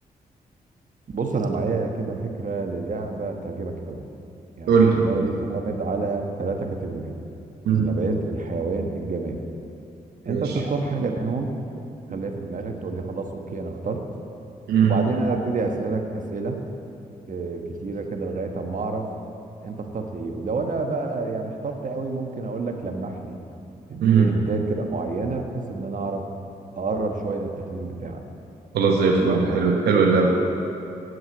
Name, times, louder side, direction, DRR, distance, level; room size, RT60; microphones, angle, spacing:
voice 1, 1.1-4.0 4.6-7.1 7.7-9.4 10.2-11.5 12.1-14.0 14.8-16.6 17.3-19.1 19.6-23.4 23.9-26.3 26.7-28.2 29.2-29.5, right 3 dB, 55° right, 3 dB, 1.3 m, -28 dB
voice 2, 4.7-5.1 7.6-7.9 10.3-10.6 14.7-15.0 24.0-24.3 28.7-30.3, right 5 dB, 85° right, 0 dB, 0.9 m, -19 dB
7.8 x 7.8 x 8.8 m, 2.7 s
supercardioid pair, 55°, 16 cm